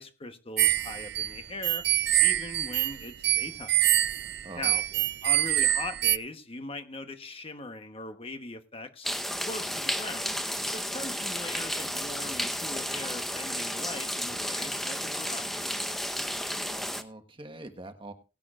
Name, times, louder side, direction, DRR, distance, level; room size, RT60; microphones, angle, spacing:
voice 1, 0.0-1.8 2.2-3.8 4.6-4.8 5.2-9.1 9.5-10.3 10.7-15.6, left 2 dB, 30° left, 1.1 m, -40 dB
sound 1, 0.6-6.2, right 14 dB, 60° right, 0.5 m, -25 dB
voice 2, 4.4-5.1 16.5-18.1, right 2 dB, 30° right, 1.4 m, -45 dB
sound 2, 9.0-17.0, equal, ahead, 0.9 m, -32 dB
18.0 x 10.5 x 2.5 m
head